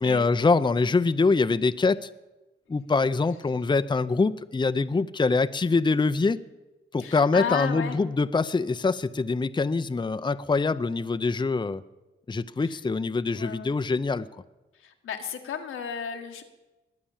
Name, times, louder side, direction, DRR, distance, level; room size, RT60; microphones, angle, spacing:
voice 1, 0.0-2.1 2.7-6.4 6.9-11.8 12.3-14.3, left 4 dB, 20° left, 12 dB, 0.6 m, -24 dB
voice 2, 7.0-8.0 12.6-12.8 13.3-13.8 14.7-16.4, left 7 dB, 90° left, 4 dB, 1.6 m, -34 dB
21.0 x 8.6 x 7.3 m, 1.1 s
cardioid pair, 60°, 21 cm